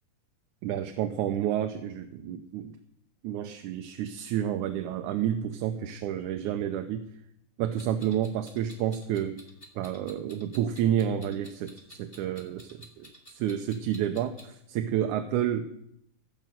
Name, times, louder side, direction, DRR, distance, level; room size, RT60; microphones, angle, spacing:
voice 1, 0.6-2.8 3.2-7.1 7.6-9.4 9.8-15.7, right 10 dB, 80° right, 7 dB, 2.1 m, -30 dB
Clock, 7.8-14.5, equal, 15° left, 2.2 m, -52 dB
16.5 x 6.5 x 7.7 m, 0.78 s
omnidirectional pair, 3.6 m